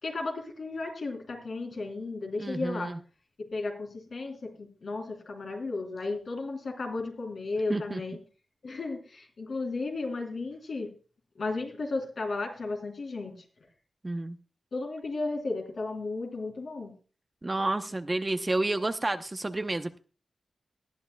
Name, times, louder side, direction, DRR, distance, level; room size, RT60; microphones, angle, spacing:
voice 1, 0.0-2.9 3.5-8.2 8.6-10.9 11.4-13.4 14.7-16.9, left 3 dB, 65° left, 2 dB, 3.5 m, -34 dB
voice 2, 2.4-3.0 7.7-8.0 14.0-14.4 17.4-20.0, right 2 dB, 25° right, 9 dB, 0.8 m, -30 dB
19.0 x 10.5 x 2.3 m, 0.38 s
cardioid pair, 75°, 0 cm